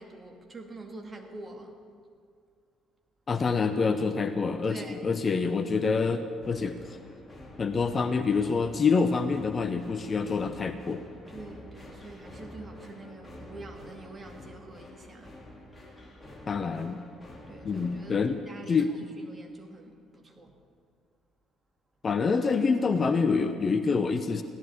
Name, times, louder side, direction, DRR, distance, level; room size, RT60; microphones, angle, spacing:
voice 1, 0.0-1.8 4.7-5.1 11.3-15.3 17.5-18.9 19.2-20.5, right 2 dB, 25° right, 2 dB, 2.3 m, -46 dB
voice 2, 3.3-6.8 7.6-11.0 16.5-17.0 17.6-18.4 18.7-18.9 22.0-24.4, left 4 dB, 35° left, 9 dB, 0.8 m, -26 dB
sound 1, 6.4-18.3, left 1 dB, 15° left, 3.7 m, -48 dB
16.0 x 12.0 x 7.1 m, 2.2 s
figure-of-eight pair, 50°, 0 cm